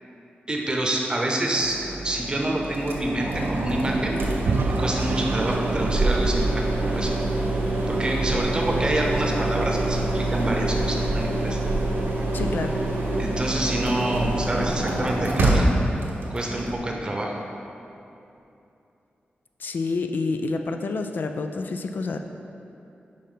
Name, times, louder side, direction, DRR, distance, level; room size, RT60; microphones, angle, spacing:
voice 1, 0.5-1.8 2.0-4.2 4.7-7.1 7.9-11.6 13.2-15.7 16.3-17.3, right 1 dB, 25° right, 0 dB, 0.8 m, -27 dB
sound 1, 1.5-16.7, right 2 dB, 90° right, 1.0 m, -25 dB
Vehicle / Engine, 4.4-7.5, right 3 dB, 70° right, 0.4 m, -30 dB
voice 2, 12.3-12.8 19.6-22.2, left 3 dB, 65° left, 6 dB, 0.4 m, -28 dB
5.5 x 5.2 x 5.6 m, 2.8 s
wide cardioid pair, 135°, 4 cm